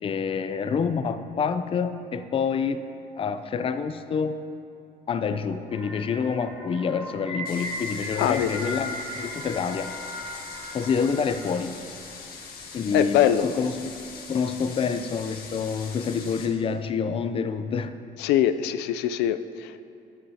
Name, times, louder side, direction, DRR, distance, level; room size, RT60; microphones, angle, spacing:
voice 1, 0.0-2.8 3.2-4.4 5.1-9.9 10.7-11.8 12.7-13.2 13.4-14.0 14.3-17.9, left 6 dB, 35° left, 10 dB, 0.5 m, -27 dB
sound 1, 5.7-11.5, left 1 dB, 20° right, 2.4 m, -37 dB
sound 2, 7.5-16.5, left 5 dB, 60° left, 1.6 m, -42 dB
voice 2, 8.2-8.5 12.9-13.5 18.2-19.8, left 11 dB, 90° left, 11 dB, 0.4 m, -23 dB
13.5 x 9.3 x 2.8 m, 2.6 s
cardioid pair, 110°, 17 cm